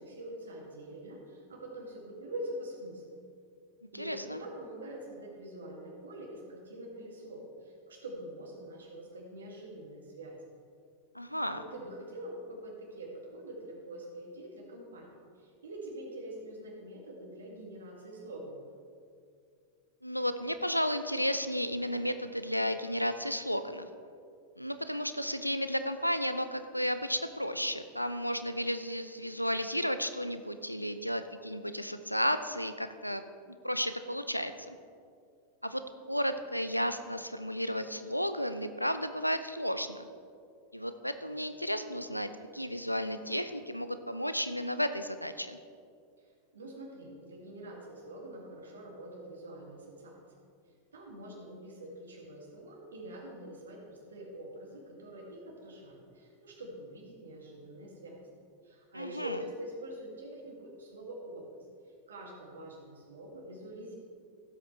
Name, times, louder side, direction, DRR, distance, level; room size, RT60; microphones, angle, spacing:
voice 1, 0.0-3.0 3.9-10.4 11.5-18.6 46.2-46.3 46.5-50.2 50.9-58.2 58.6-61.5 62.1-64.0, right 1 dB, 70° right, -1 dB, 2.4 m, -45 dB
voice 2, 3.9-4.4 11.1-11.6 20.0-23.9 24.6-33.2 33.6-34.8 35.6-35.8 36.1-40.1 40.7-45.6 58.9-59.4, equal, 90° left, 10 dB, 0.5 m, -33 dB
16.0 x 8.1 x 3.3 m, 2.3 s
figure-of-eight pair, 90°, 0 cm